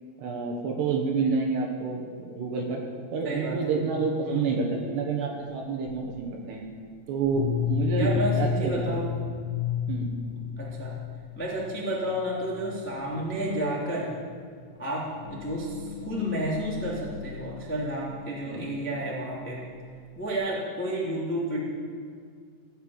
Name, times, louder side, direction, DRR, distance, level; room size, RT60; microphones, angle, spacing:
voice 1, 0.2-2.8 3.1-6.6 7.1-9.0 9.9-10.1 18.5-18.7, right 4 dB, 70° right, 1 dB, 3.0 m, -28 dB
voice 2, 3.2-3.7 4.2-4.5 8.0-9.0 10.3-10.9 11.3-14.1 14.8-19.6 20.1-21.6, right 1 dB, 5° left, -5 dB, 1.0 m, -31 dB
sound 1, 5.9-6.3 7.2-11.7 12.1-12.2 12.5-12.8 13.1-13.4 14.0-14.1 15.1-18.3, left 7 dB, 85° left, 3.5 m, -32 dB
16.0 x 8.1 x 8.7 m, 2.1 s
omnidirectional pair, 6.0 m